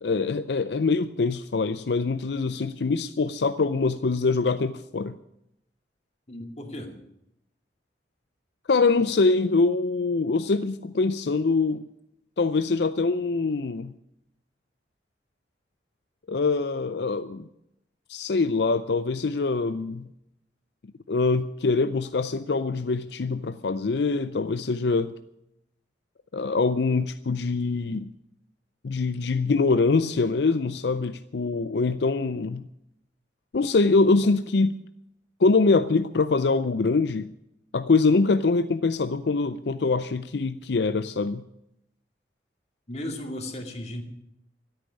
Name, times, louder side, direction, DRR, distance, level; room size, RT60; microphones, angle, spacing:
voice 1, 0.0-5.2 8.7-11.8 12.4-13.9 16.3-17.5 18.1-20.1 21.1-25.1 26.3-28.1 28.8-32.6 33.5-34.8 35.4-37.3 37.7-41.4, left 3 dB, 65° left, 11 dB, 0.5 m, -24 dB
voice 2, 6.3-7.0 42.9-44.0, left 1 dB, 40° left, 3 dB, 2.3 m, -35 dB
13.5 x 9.0 x 9.9 m, 0.82 s
head